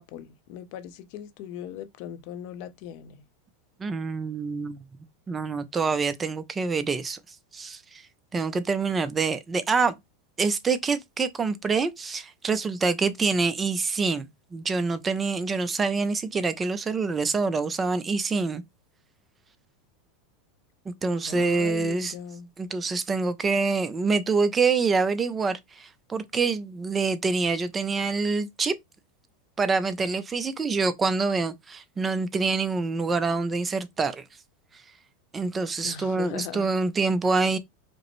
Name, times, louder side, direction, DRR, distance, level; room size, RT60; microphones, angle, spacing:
voice 1, 0.0-3.2 21.2-22.5 35.8-36.7, left 9 dB, 55° left, 0.5 m, -39 dB
voice 2, 3.8-4.8 5.3-7.2 7.5-8.0 8.3-10.0 10.4-18.6 20.9-22.1 22.6-28.7 29.6-34.2 35.3-37.6, right 4 dB, 15° right, 0.4 m, -26 dB
5.1 x 2.0 x 3.0 m
supercardioid pair, 140°, 0 cm